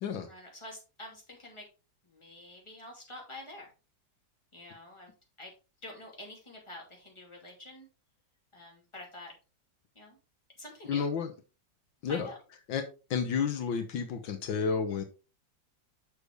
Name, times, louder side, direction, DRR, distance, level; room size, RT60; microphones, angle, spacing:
voice 1, 0.3-1.7 2.0-3.7 4.5-5.1 5.4-5.5 5.8-7.9 8.5-9.3 9.9-10.2 10.6-11.1 12.0-12.4, left 1 dB, 15° left, -2 dB, 2.7 m, -47 dB
voice 2, 10.9-11.3 12.0-12.3 12.7-12.8 13.1-15.0, left 6 dB, 80° left, 5 dB, 1.7 m, -31 dB
6.8 x 6.5 x 3.3 m, 0.31 s
omnidirectional pair, 2.0 m